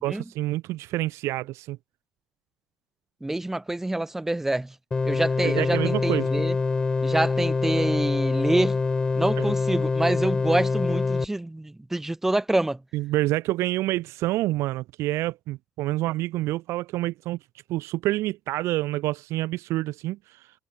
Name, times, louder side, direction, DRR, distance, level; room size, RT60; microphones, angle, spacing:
voice 1, 0.0-1.8 5.4-6.3 9.4-9.5 12.9-17.4 17.7-20.4, right 17 dB, 65° right, 0.9 m, -27 dB
voice 2, 3.2-4.7 5.0-6.6 7.0-8.8 9.2-12.8, right 1 dB, 5° right, 3.7 m, -26 dB
sound 1, 4.9-11.3, left 4 dB, 15° left, 2.4 m, -25 dB
cardioid pair, 145°, 5 cm